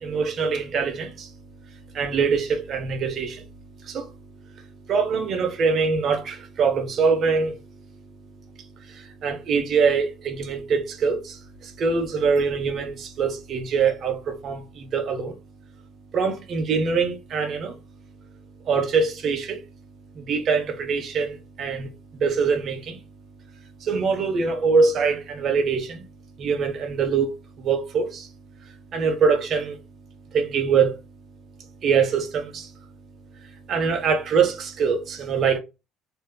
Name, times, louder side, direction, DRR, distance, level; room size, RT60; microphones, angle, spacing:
voice 1, 0.0-1.3 1.9-3.4 3.8-4.1 4.9-7.6 8.9-15.4 16.1-17.7 18.6-19.6 20.1-23.0 23.8-26.1 26.4-27.3 27.6-28.3 28.9-29.8 30.3-31.0 31.8-32.7 33.7-35.6, right 5 dB, 55° right, 0.8 m, -23 dB
3.3 x 2.7 x 2.3 m
supercardioid pair, 80°, 0 cm